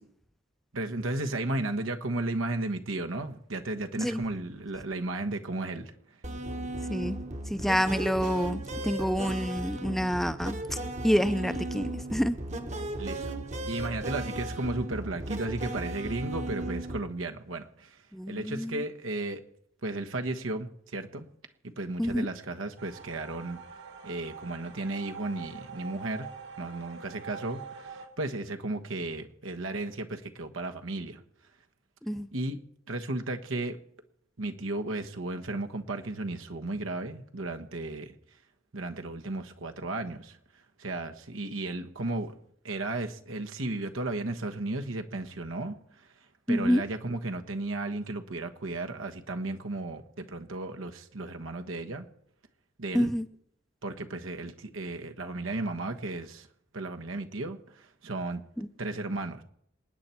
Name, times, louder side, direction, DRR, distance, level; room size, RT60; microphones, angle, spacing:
voice 1, 0.7-5.9 13.0-13.3 13.7-18.0 18.3-19.4 19.8-21.3 21.8-23.6 24.0-26.3 26.6-31.2 32.3-32.6 32.9-33.8 34.4-38.1 38.7-40.4 40.8-42.3 42.6-46.1 46.5-52.1 52.8-53.1 53.8-56.5 56.7-58.4 58.8-59.4, right 2 dB, 85° right, 1.3 m, -34 dB
sound 1, 6.2-17.0, right 1 dB, 35° right, 1.1 m, -36 dB
voice 2, 7.5-10.8 11.0-12.4 18.1-18.8 22.0-22.3 32.0-32.3 46.5-46.8 52.9-53.3 58.6-58.7, equal, ahead, 0.5 m, -28 dB
sound 2, 22.8-28.1, right 6 dB, 60° right, 2.0 m, -44 dB
27.5 x 9.6 x 4.5 m
head